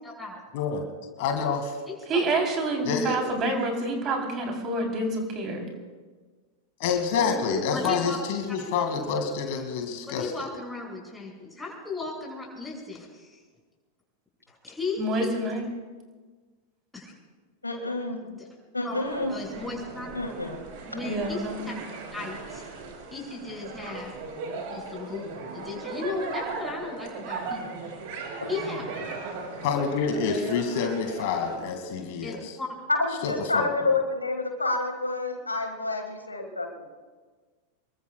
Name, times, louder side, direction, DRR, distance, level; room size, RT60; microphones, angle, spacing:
voice 1, 0.0-0.4 1.9-2.2 7.7-8.2 10.0-13.3 14.5-15.4 16.9-17.1 18.3-18.5 18.8-19.0 19.3-20.1 20.8-21.7 22.1-22.6 23.1-24.1 24.7-27.8 28.5-28.8 32.2-32.7, left 3 dB, 5° left, -3 dB, 6.0 m, -36 dB
voice 2, 1.2-1.7 2.8-3.2 6.8-10.4 29.6-32.6 33.2-33.9, left 6 dB, 50° left, 4 dB, 2.2 m, -28 dB
voice 3, 2.1-5.7 15.0-15.7 21.0-21.7, right 2 dB, 30° right, 2 dB, 3.6 m, -28 dB
voice 4, 7.1-7.6 8.6-8.7 17.6-18.2 18.7-19.3 20.1-20.6 32.9-36.7, left 2 dB, 80° left, 4 dB, 1.9 m, -28 dB
sound 1, 19.0-31.6, right 4 dB, 50° right, 4.3 m, -37 dB
26.5 x 22.5 x 2.4 m, 1.4 s
figure-of-eight pair, 90°, 0 cm